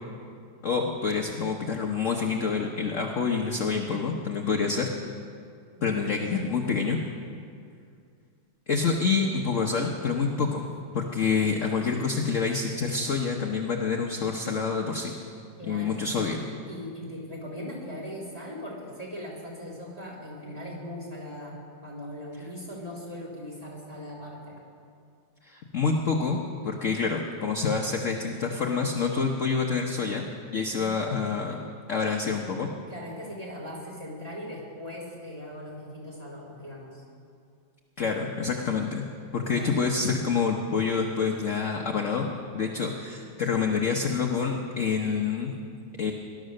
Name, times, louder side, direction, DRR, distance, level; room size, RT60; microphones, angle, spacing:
voice 1, 0.6-4.9 5.8-7.0 8.7-10.7 10.9-15.1 15.6-16.4 25.4-26.4 26.6-30.3 30.5-31.6 31.9-32.7 38.0-39.0 39.3-42.3 42.5-45.5 46.0-46.1, left 5 dB, 50° left, 2 dB, 1.1 m, -27 dB
voice 2, 5.8-6.2 15.6-21.6 21.8-24.6 30.7-31.4 32.9-37.0 39.3-39.7, left 1 dB, 20° right, -3 dB, 3.5 m, -40 dB
18.5 x 12.0 x 6.5 m, 2.4 s
omnidirectional pair, 2.1 m